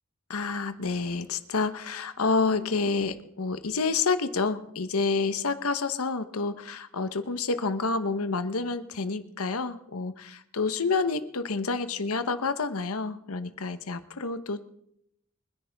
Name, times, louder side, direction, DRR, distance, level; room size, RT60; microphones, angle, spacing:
voice 1, 0.3-14.6, left 4 dB, 80° left, 11 dB, 1.0 m, -29 dB
24.5 x 10.5 x 3.5 m, 0.76 s
head